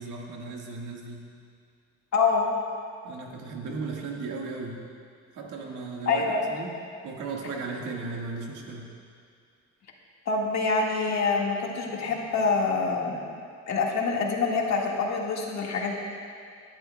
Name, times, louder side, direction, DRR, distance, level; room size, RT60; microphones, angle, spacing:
voice 1, 0.0-1.3 3.0-4.9 5.3-6.7 7.0-8.9, right 4 dB, 85° right, -1 dB, 1.7 m, -36 dB
voice 2, 2.1-2.5 6.1-6.4 10.3-13.2 13.7-15.9, left 4 dB, 65° left, -1 dB, 1.8 m, -26 dB
17.5 x 11.0 x 2.3 m, 2.3 s
cardioid pair, 90°, 30 cm